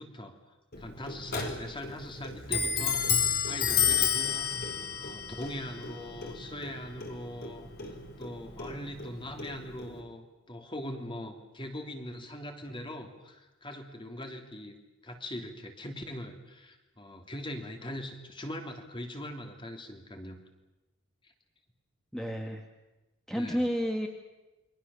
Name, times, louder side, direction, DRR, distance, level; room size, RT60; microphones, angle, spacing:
voice 1, 0.0-14.7 15.0-20.4 23.3-23.6, left 1 dB, 25° left, 4 dB, 3.0 m, -41 dB
Clock, 0.7-10.0, left 7 dB, 50° left, 4.3 m, -32 dB
voice 2, 22.1-22.7 23.3-24.1, equal, ahead, 2 dB, 2.0 m, -31 dB
29.0 x 23.5 x 7.1 m, 1.0 s
head